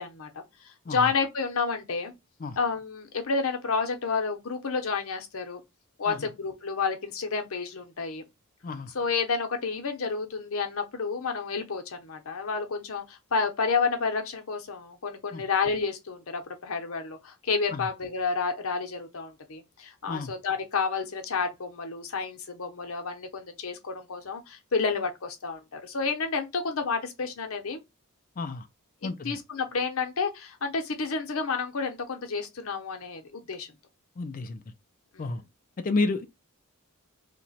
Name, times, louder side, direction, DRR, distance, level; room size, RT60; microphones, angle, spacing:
voice 1, 0.0-2.1 2.6-5.6 6.0-8.2 8.9-27.8 29.0-33.7 35.1-35.3, left 4 dB, 65° left, 0.7 m, -30 dB
voice 2, 28.4-28.7 29.0-29.4 34.2-34.6 35.2-35.4 35.8-36.2, left 3 dB, 40° left, 0.4 m, -31 dB
2.9 x 2.2 x 4.0 m
head